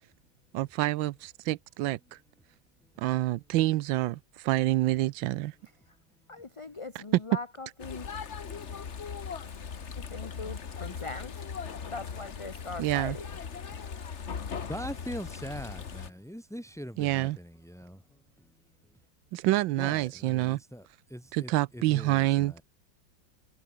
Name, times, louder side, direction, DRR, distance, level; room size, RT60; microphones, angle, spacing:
voice 1, 0.5-2.2 3.0-5.5 6.9-7.0 12.8-13.2 17.0-17.4 19.3-20.6 21.3-22.6, right 17 dB, 90° right, 1.4 m, -27 dB
voice 2, 6.3-8.1 10.1-11.3 11.9-13.3, left 3 dB, 20° left, 1.0 m, -40 dB
sound 1, 7.8-16.1, left 6 dB, 40° left, 1.5 m, -39 dB
voice 3, 14.6-18.0 18.4-18.5 19.8-22.6, equal, ahead, 7.5 m, -42 dB
omnidirectional pair, 2.0 m